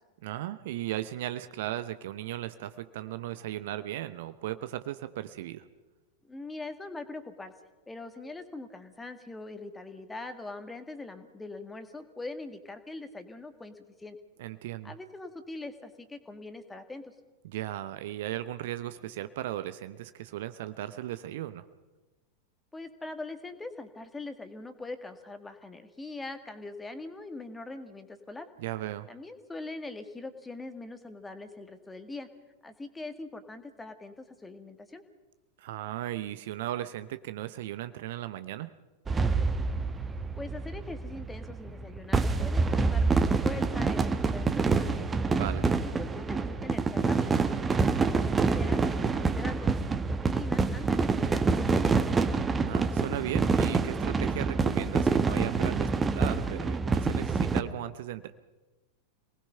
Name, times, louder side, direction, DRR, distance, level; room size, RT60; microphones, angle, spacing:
voice 1, 0.2-5.7 14.4-14.9 17.4-21.6 28.6-29.1 35.6-38.7 45.3-45.7 52.6-58.3, right 13 dB, 55° right, 12 dB, 0.9 m, -36 dB
voice 2, 6.2-7.5 7.9-14.2 14.8-17.1 22.7-28.5 29.1-32.3 32.6-35.0 40.4-45.1 45.8-47.4 47.8-52.4, left 2 dB, 10° left, 8 dB, 1.9 m, -42 dB
sound 1, 39.1-57.6, right 4 dB, 15° right, 1.2 m, -27 dB
27.0 x 19.5 x 5.7 m, 1.2 s
figure-of-eight pair, 90°, 0 cm